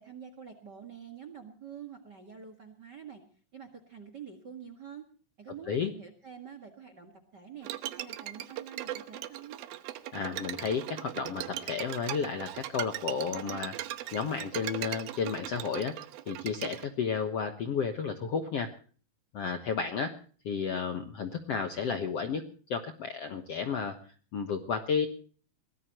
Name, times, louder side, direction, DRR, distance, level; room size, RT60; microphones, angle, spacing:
voice 1, 0.0-3.2 3.5-5.1 5.4-7.7 8.0-9.6, right 7 dB, 40° right, 9 dB, 1.7 m, -47 dB
Bowed string instrument, 7.6-16.9, right 13 dB, 90° right, 2.9 m, -39 dB
voice 2, 10.1-13.8 14.1-18.7 19.3-20.1 20.4-22.4 22.7-24.0 24.3-25.1, left 6 dB, 60° left, 7 dB, 1.7 m, -32 dB
22.5 x 18.5 x 3.0 m, 0.43 s
omnidirectional pair, 4.3 m